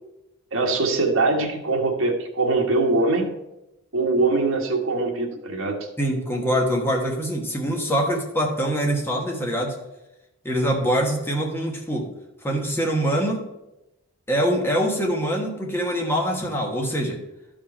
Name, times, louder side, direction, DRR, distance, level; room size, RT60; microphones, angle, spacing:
voice 1, 0.5-3.3 3.9-5.8, right 3 dB, 70° right, 1 dB, 1.5 m, -22 dB
voice 2, 6.0-9.8 10.4-12.1 12.4-13.5 14.3-17.2, equal, 10° left, 0 dB, 1.4 m, -24 dB
12.0 x 5.0 x 4.3 m, 0.92 s
head